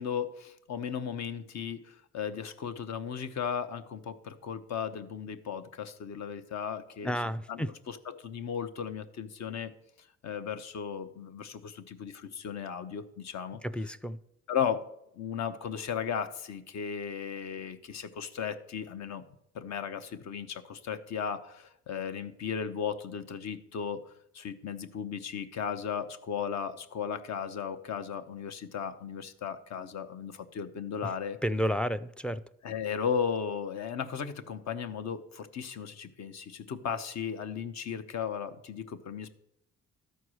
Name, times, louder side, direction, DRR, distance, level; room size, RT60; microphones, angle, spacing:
voice 1, 0.0-7.2 7.5-9.7 10.2-13.6 14.5-14.9 15.2-19.2 19.5-31.4 32.6-39.3, left 7 dB, 65° left, 0.9 m, -36 dB
voice 2, 7.0-7.7 13.6-14.2 31.4-32.4, equal, 5° left, 0.3 m, -31 dB
13.0 x 4.6 x 6.3 m
cardioid pair, 90°, 30 cm